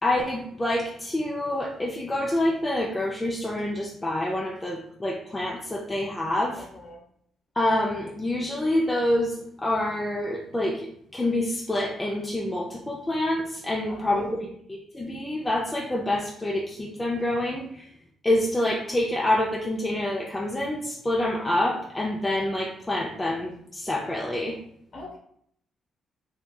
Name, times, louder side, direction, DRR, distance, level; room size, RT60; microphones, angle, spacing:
voice 1, 0.0-6.6 7.6-10.9 11.1-17.9 18.2-24.6, left 1 dB, 15° left, -2 dB, 0.4 m, -27 dB
voice 2, 6.6-7.0 13.9-14.3 24.9-25.2, left 3 dB, 50° left, 1 dB, 1.0 m, -40 dB
3.4 x 2.7 x 2.3 m, 0.69 s
cardioid pair, 90°, 0 cm